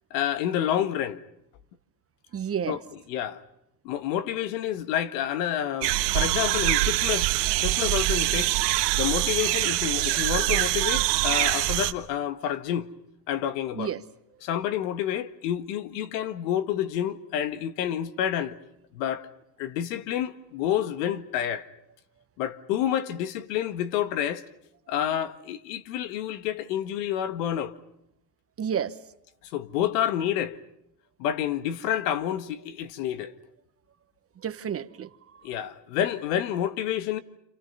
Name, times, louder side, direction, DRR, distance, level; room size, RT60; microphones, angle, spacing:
voice 1, 0.1-1.2 2.7-2.8 3.1-3.4 3.8-7.3 7.6-8.5 9.0-12.9 13.3-13.9 14.4-18.6 18.9-19.3 19.6-21.7 22.4-24.4 24.9-27.7 29.4-30.6 31.2-33.3 35.4-37.2, left 10 dB, 80° left, 1.7 m, -29 dB
voice 2, 2.3-2.8 13.7-14.0 28.6-29.0 34.4-35.5, right 8 dB, 30° right, 1.1 m, -31 dB
sound 1, 5.8-11.9, right 18 dB, 85° right, 1.5 m, -24 dB
29.0 x 28.5 x 5.6 m
supercardioid pair, 105°, 47 cm